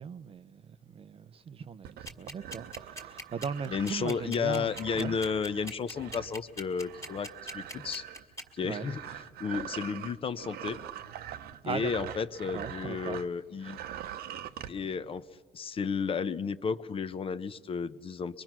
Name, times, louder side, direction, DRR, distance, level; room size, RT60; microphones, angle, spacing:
voice 1, 0.0-5.2 8.6-8.9 11.6-12.1 12.5-13.2, right 6 dB, 35° right, 0.6 m, -39 dB
sound 1, 1.8-13.3 13.6-14.7, right 10 dB, 65° right, 0.9 m, -43 dB
sound 2, 2.1-8.4, left 1 dB, 15° left, 2.1 m, -41 dB
voice 2, 3.7-8.0 8.5-9.0 9.4-10.8 11.7-13.8 14.7-15.2 15.5-18.4, left 6 dB, 35° left, 0.7 m, -33 dB
24.5 x 22.5 x 6.0 m
cardioid pair, 135°, 17 cm